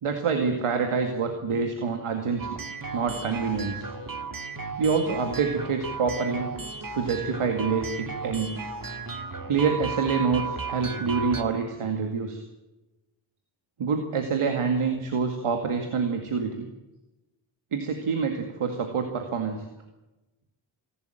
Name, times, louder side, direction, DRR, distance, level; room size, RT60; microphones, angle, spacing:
voice 1, 0.0-2.6 2.9-3.9 4.8-6.5 6.9-8.5 9.5-12.4 13.8-16.7 17.7-19.7, right 5 dB, 85° right, 5 dB, 2.2 m, -26 dB
sound 1, 2.4-11.4, right 4 dB, 40° right, 2.0 m, -35 dB
26.0 x 12.5 x 9.1 m, 1.0 s
cardioid pair, 50°, 50 cm